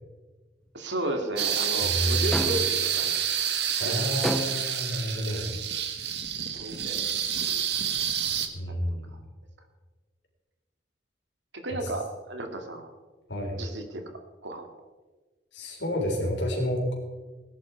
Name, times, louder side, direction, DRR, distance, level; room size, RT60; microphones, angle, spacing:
voice 1, 0.7-3.3 4.0-4.1 6.5-7.0 7.5-7.8 8.7-8.8 9.1-9.2 11.5-13.0 13.6-14.0 14.4-14.8, right 1 dB, 85° right, 5 dB, 2.3 m, -34 dB
sound 1, 1.4-8.5, right 9 dB, 65° right, 1.4 m, -28 dB
voice 2, 1.8-2.6 3.8-5.5 8.5-9.1 13.3-13.6 15.5-16.9, equal, 80° left, 1 dB, 4.0 m, -29 dB
sound 2, 2.3-2.9 4.2-4.8, equal, 5° left, 0.3 m, -31 dB
19.5 x 11.0 x 4.5 m, 1.3 s
head